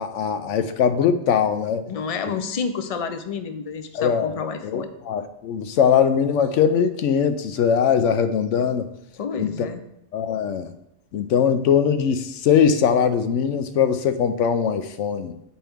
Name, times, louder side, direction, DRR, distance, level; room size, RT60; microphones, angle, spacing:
voice 1, 0.0-1.8 3.9-8.9 9.4-9.5 10.1-10.7 11.1-15.3, left 7 dB, 85° left, 9 dB, 0.9 m, -21 dB
voice 2, 1.8-4.9 9.2-9.8, left 5 dB, 60° left, 8 dB, 0.3 m, -29 dB
8.8 x 4.4 x 3.5 m, 0.81 s
omnidirectional pair, 1.2 m